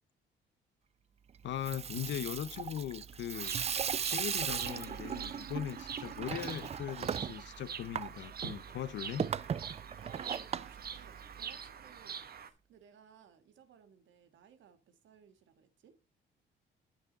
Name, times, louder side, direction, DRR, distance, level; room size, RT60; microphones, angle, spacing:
voice 1, 1.4-3.6 4.0-9.3, left 10 dB, 65° left, 0.6 m, -39 dB
Water tap faucet / Sink (filling or washing), 1.5-11.7, right 7 dB, 30° right, 0.4 m, -38 dB
Bird vocalization bird call bird song, 3.3-12.5, right 7 dB, 50° right, 1.0 m, -45 dB
voice 2, 10.0-16.0, right 8 dB, 70° right, 1.5 m, -60 dB
9.0 x 6.3 x 3.9 m
cardioid pair, 90°, 20 cm